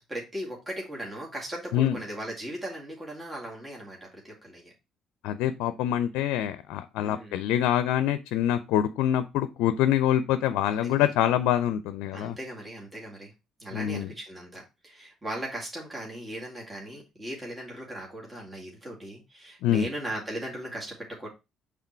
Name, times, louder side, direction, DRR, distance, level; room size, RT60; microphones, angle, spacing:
voice 1, 0.1-4.7 7.0-7.4 10.6-11.0 12.1-13.3 13.6-21.3, right 1 dB, 20° right, -2 dB, 2.1 m, -38 dB
voice 2, 5.2-12.3 13.7-14.1 19.6-19.9, left 11 dB, 80° left, 12 dB, 0.4 m, -25 dB
5.8 x 3.7 x 4.4 m, 0.26 s
supercardioid pair, 70°, 0 cm